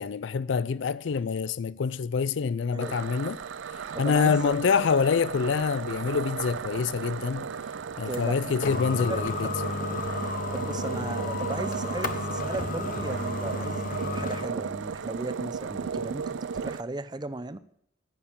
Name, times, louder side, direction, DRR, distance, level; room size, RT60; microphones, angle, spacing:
voice 1, 0.0-3.4 4.0-7.5 8.0-9.5, left 5 dB, 70° left, 0.4 m, -26 dB
voice 2, 2.7-3.0 3.9-4.6 8.0-9.6 10.5-17.6, right 2 dB, 20° right, 0.6 m, -37 dB
sound 1, 2.8-16.8, right 6 dB, 70° right, 0.4 m, -35 dB
sound 2, 5.6-14.6, left 2 dB, 45° left, 1.0 m, -33 dB
14.5 x 6.6 x 8.7 m
head